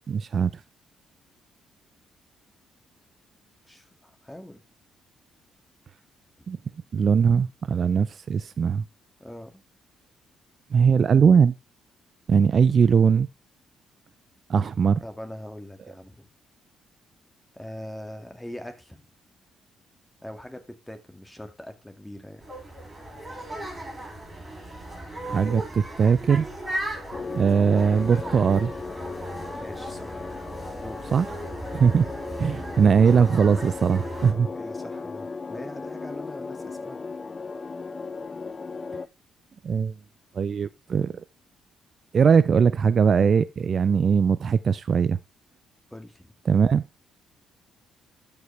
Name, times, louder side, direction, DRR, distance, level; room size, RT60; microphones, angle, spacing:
voice 1, 0.1-0.5 6.5-6.6 6.9-8.8 10.7-11.5 12.3-13.3 14.5-15.0 25.2-26.5 27.3-28.7 31.1-31.3 31.7-32.1 32.4-34.5 39.6-39.9 40.3-41.2 42.1-45.2 46.5-46.8, right 6 dB, 50° right, 0.4 m, -20 dB
voice 2, 3.6-4.6 6.4-6.5 9.2-9.6 15.0-16.3 17.5-19.1 20.2-22.4 29.6-30.2 30.8-31.0 34.5-37.0 45.9-46.3, left 1 dB, 10° left, 2.0 m, -42 dB
sound 1, 22.4-34.3, right 1 dB, 20° right, 6.3 m, -37 dB
sound 2, 27.1-39.1, left 4 dB, 30° left, 0.5 m, -36 dB
12.5 x 5.4 x 3.3 m
cardioid pair, 90°, 0 cm